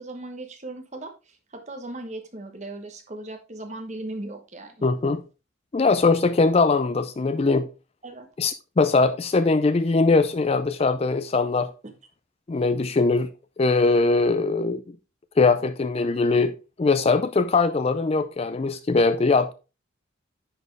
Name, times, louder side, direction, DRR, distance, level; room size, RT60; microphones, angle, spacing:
voice 1, 0.0-4.8 8.0-8.3 11.8-11.9, right 2 dB, 35° right, 1.2 m, -38 dB
voice 2, 4.8-5.2 5.7-7.7 8.4-11.7 12.5-13.3 13.6-14.8 15.4-19.5, left 3 dB, 30° left, 0.3 m, -21 dB
10.0 x 4.3 x 3.2 m
head